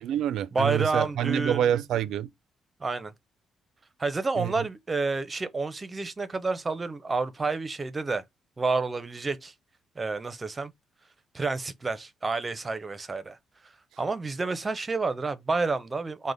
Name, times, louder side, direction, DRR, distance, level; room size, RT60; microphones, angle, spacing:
voice 1, 0.0-2.3 4.4-4.5, right 10 dB, 80° right, 0.3 m, -27 dB
voice 2, 0.5-1.7 2.8-3.1 4.0-8.2 8.6-9.5 10.0-10.7 11.3-13.4 14.0-16.3, right 3 dB, 25° right, 0.6 m, -29 dB
4.7 x 2.1 x 4.0 m
cardioid pair, 90°, 0 cm